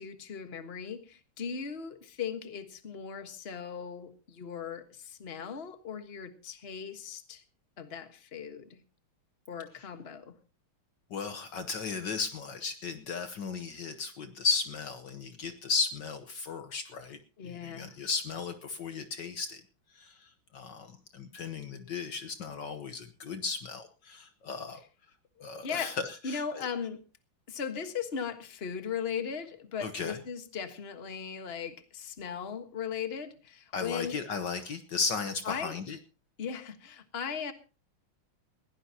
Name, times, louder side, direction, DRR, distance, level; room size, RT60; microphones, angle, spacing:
voice 1, 0.0-7.4 7.8-8.8 9.5-10.3 17.4-18.0 25.6-25.9 26.2-27.0 27.5-34.2 35.4-35.7 36.4-37.5, left 7 dB, 30° left, 8 dB, 1.6 m, -38 dB
voice 2, 11.1-17.2 17.4-19.6 19.9-24.8 25.4-26.7 29.8-30.2 33.7-36.0, left 4 dB, 60° left, 8 dB, 1.6 m, -35 dB
21.0 x 16.0 x 2.9 m, 0.34 s
omnidirectional pair, 2.3 m